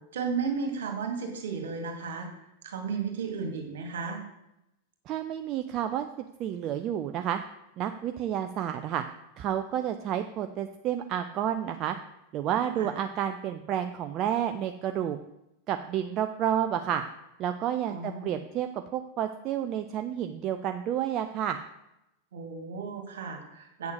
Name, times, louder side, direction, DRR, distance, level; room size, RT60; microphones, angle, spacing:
voice 1, 0.1-2.3 2.6-4.2 12.8-12.9 17.9-18.3 22.3-23.9, right 5 dB, 60° right, 3 dB, 2.2 m, -34 dB
voice 2, 5.1-6.1 6.4-7.4 7.8-9.0 9.4-12.0 12.3-15.2 15.7-17.0 17.4-21.6, right 10 dB, 35° right, 7 dB, 0.6 m, -30 dB
8.0 x 7.1 x 6.2 m, 0.87 s
figure-of-eight pair, 90°, 0 cm